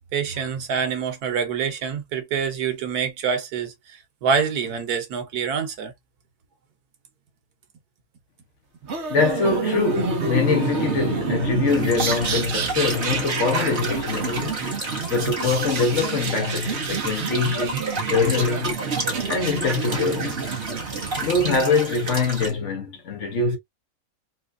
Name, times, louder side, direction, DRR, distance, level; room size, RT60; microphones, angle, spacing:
voice 1, 0.1-5.9 8.8-8.9, right 6 dB, 90° right, 1.5 m, -26 dB
sound 1, 8.9-21.6, right 5 dB, 50° right, 1.1 m, -28 dB
voice 2, 9.1-14.6 15.1-18.7 19.3-20.4 21.2-23.6, left 4 dB, 55° left, 1.1 m, -23 dB
sound 2, 11.7-22.5, right 2 dB, 35° right, 1.5 m, -32 dB
4.2 x 2.4 x 2.5 m
omnidirectional pair, 1.6 m